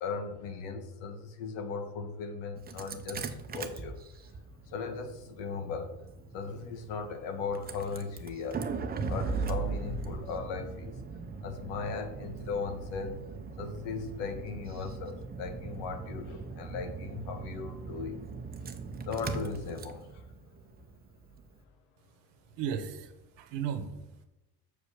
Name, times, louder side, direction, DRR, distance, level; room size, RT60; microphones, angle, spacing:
voice 1, 0.0-4.0 4.7-5.9 6.3-8.6 9.1-11.0 11.4-13.2 13.6-18.2 19.1-20.1, left 5 dB, 90° left, 8 dB, 1.4 m, -37 dB
Engine starting, 2.6-21.5, right 4 dB, 20° right, 0.7 m, -39 dB
voice 2, 22.0-24.3, right 8 dB, 85° right, 8 dB, 1.2 m, -37 dB
6.9 x 5.0 x 6.5 m, 0.95 s
cardioid pair, 140°, 42 cm